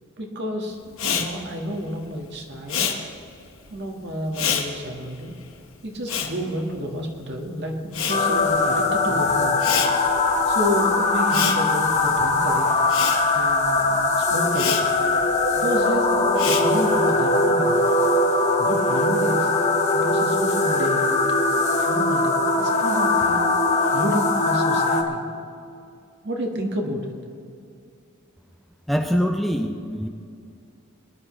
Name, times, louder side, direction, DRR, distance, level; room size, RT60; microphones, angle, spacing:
voice 1, 0.2-2.9 3.7-5.3 5.8-9.6 10.5-12.7 13.3-14.8 15.5-17.8 18.6-19.5 19.9-21.2 21.8-23.4 23.9-25.2 26.2-27.2, equal, 55° right, 1 dB, 1.8 m, -30 dB
Respiratory sounds, 0.9-7.4 7.6-17.1, left 7 dB, 70° left, 1.4 m, -30 dB
sound 1, 8.1-25.0, left 2 dB, 35° left, 1.3 m, -21 dB
voice 2, 28.9-30.1, equal, ahead, 3 dB, 0.6 m, -23 dB
21.5 x 11.0 x 3.3 m, 2.4 s
head